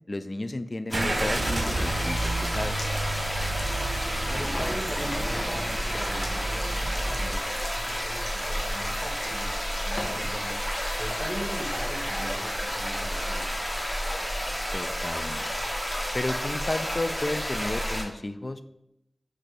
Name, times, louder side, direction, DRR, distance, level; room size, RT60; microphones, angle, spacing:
voice 1, 0.1-2.8 10.0-10.3 14.7-15.4 16.1-18.6, left 2 dB, 45° left, 11 dB, 0.3 m, -33 dB
sound 1, 0.9-18.0, equal, 20° left, 1.3 m, -31 dB
Car / Engine starting, 0.9-7.3, right 2 dB, 60° right, 0.5 m, -31 dB
sound 2, 1.5-1.8 2.2-4.1 4.4-4.8 6.1-6.3 6.6-10.3, left 1 dB, 70° left, 0.7 m, -42 dB
voice 2, 4.2-10.5 11.0-13.4, equal, 15° right, 0 dB, 1.0 m, -39 dB
4.3 x 2.6 x 4.7 m, 0.85 s
wide cardioid pair, 55°, 0 cm